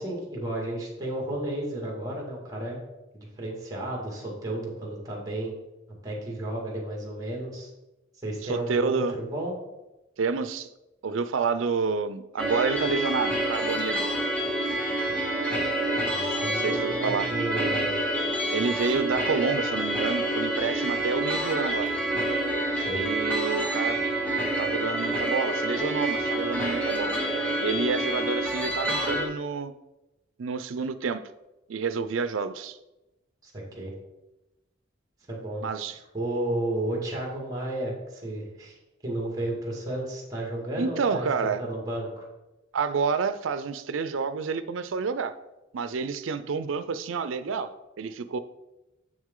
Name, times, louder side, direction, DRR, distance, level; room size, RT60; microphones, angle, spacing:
voice 1, 0.0-2.8 3.1-5.5 6.0-7.7 8.2-9.5 16.1-17.9 22.7-23.1 33.4-33.5 33.8-33.9 35.3-35.6 36.1-38.8 39.0-42.3, right 1 dB, 20° right, -2 dB, 2.0 m, -32 dB
voice 2, 8.4-9.1 10.2-10.7 11.0-14.0 16.5-17.3 18.5-21.9 22.9-24.0 24.6-27.2 27.6-29.7 30.4-31.2 31.7-32.8 35.6-36.0 40.8-41.6 42.7-45.3 45.7-48.4, right 5 dB, 80° right, 12 dB, 0.5 m, -29 dB
sound 1, 12.4-29.3, right 1 dB, 5° left, 1.2 m, -27 dB
7.2 x 6.3 x 3.7 m, 0.98 s
head